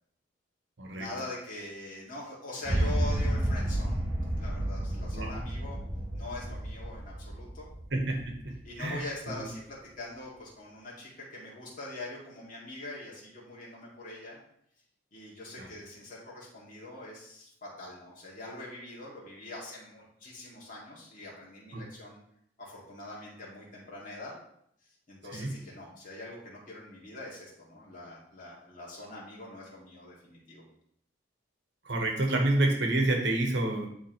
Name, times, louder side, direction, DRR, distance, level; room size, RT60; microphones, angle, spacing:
voice 1, 0.9-4.0 4.3-5.8 6.1-7.7 8.6-14.4 15.1-22.2 22.6-24.3 25.1-30.6, left 2 dB, 40° left, -5 dB, 2.3 m, -43 dB
sound 1, 2.6-8.8, right 1 dB, 20° right, 1.2 m, -31 dB
voice 2, 7.9-9.3 15.6-15.7 21.7-21.8 25.3-25.5 31.8-33.9, right 2 dB, 60° right, 2 dB, 1.2 m, -29 dB
10.5 x 3.6 x 3.1 m, 0.69 s
head